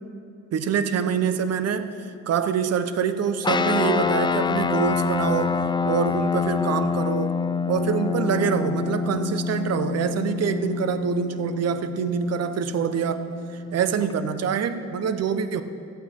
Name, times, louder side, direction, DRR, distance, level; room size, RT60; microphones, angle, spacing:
voice 1, 0.5-1.9 2.3-7.4 7.7-13.4 13.7-15.6, right 7 dB, 55° right, 11 dB, 0.7 m, -25 dB
sound 1, 3.4-14.1, left 5 dB, 15° left, 0.3 m, -26 dB
13.5 x 8.5 x 4.3 m, 2.5 s
cardioid pair, 90°, 30 cm